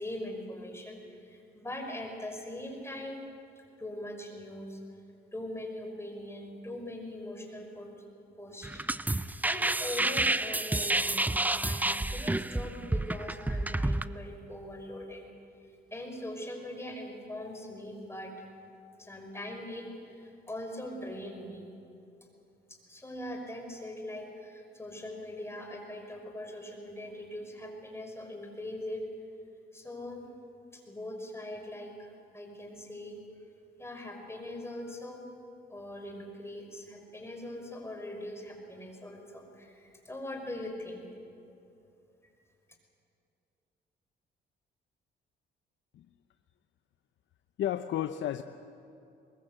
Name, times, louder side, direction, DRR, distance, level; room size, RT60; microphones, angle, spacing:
voice 1, 0.0-3.2 3.8-4.8 5.3-7.9 8.2-15.3 15.9-18.5 19.0-21.7 22.7-29.1 29.7-30.3 30.7-33.2 33.8-35.3 35.7-41.1, left 1 dB, 15° left, 3 dB, 5.6 m, -41 dB
sound 1, 8.6-14.1, right 2 dB, 10° right, 0.6 m, -29 dB
voice 2, 47.6-48.4, left 11 dB, 70° left, 9 dB, 0.8 m, -32 dB
22.5 x 22.0 x 8.1 m, 2.7 s
cardioid pair, 90°, 20 cm